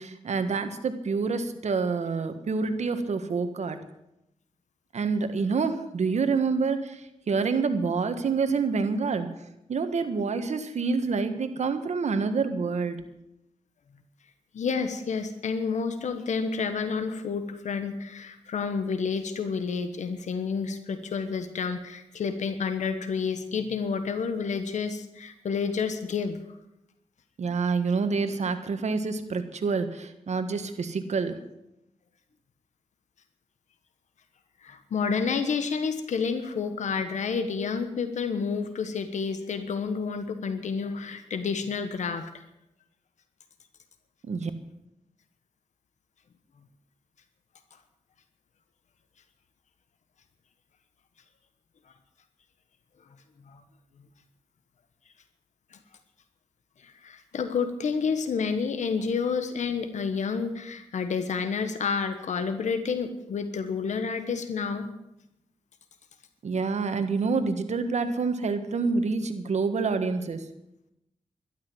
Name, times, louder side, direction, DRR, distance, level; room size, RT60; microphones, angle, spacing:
voice 1, 0.0-3.8 4.9-7.0 7.3-9.3 9.7-13.0 27.4-31.4 44.2-44.5 66.4-70.4, right 4 dB, 75° right, 9 dB, 1.6 m, -27 dB
voice 2, 14.5-26.4 34.6-42.3 53.5-53.6 56.8-64.9, left 5 dB, 90° left, 9 dB, 1.3 m, -29 dB
12.5 x 12.5 x 7.8 m, 0.86 s
cardioid pair, 75°, 12 cm